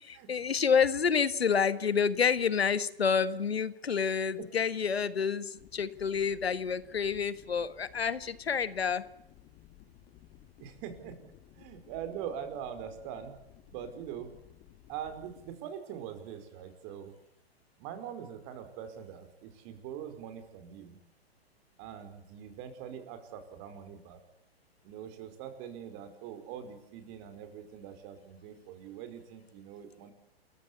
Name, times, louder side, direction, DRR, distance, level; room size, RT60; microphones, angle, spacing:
voice 1, 0.0-9.0, left 6 dB, 90° left, 15 dB, 1.6 m, -28 dB
sound 1, 5.6-15.5, left 12 dB, 35° left, 2.4 m, -57 dB
voice 2, 10.6-11.2 11.5-13.3 13.7-14.3 14.9-17.1 17.8-21.0 21.8-24.2 24.8-30.1, right 9 dB, 40° right, 9 dB, 5.2 m, -43 dB
28.5 x 15.5 x 8.4 m, 0.81 s
hypercardioid pair, 120°, 30 cm